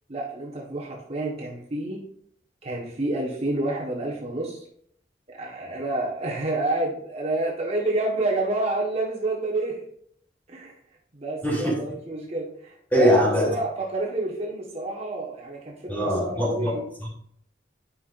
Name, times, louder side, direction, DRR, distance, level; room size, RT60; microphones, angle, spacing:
voice 1, 0.1-2.0 2.6-4.6 5.3-9.8 10.5-10.7 11.1-13.2 13.4-16.8, right 2 dB, 35° right, -3 dB, 1.3 m, -29 dB
voice 2, 11.4-11.7 12.9-13.5 15.9-17.1, equal, 10° left, -4 dB, 2.9 m, -22 dB
11.0 x 5.7 x 2.5 m, 0.66 s
head